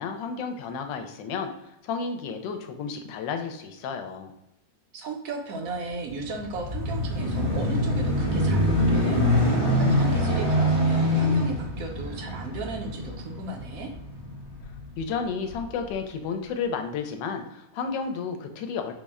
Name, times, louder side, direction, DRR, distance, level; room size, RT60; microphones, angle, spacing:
voice 1, 0.0-1.5 1.8-4.3 15.0-18.9, left 5 dB, 80° left, 6 dB, 1.2 m, -32 dB
voice 2, 4.9-13.9, right 3 dB, 65° right, 2 dB, 0.9 m, -36 dB
sound 1, 6.1-14.9 15.5-15.6, left 1 dB, 80° right, 2.1 m, -24 dB
4.1 x 2.1 x 3.4 m, 0.90 s
omnidirectional pair, 1.9 m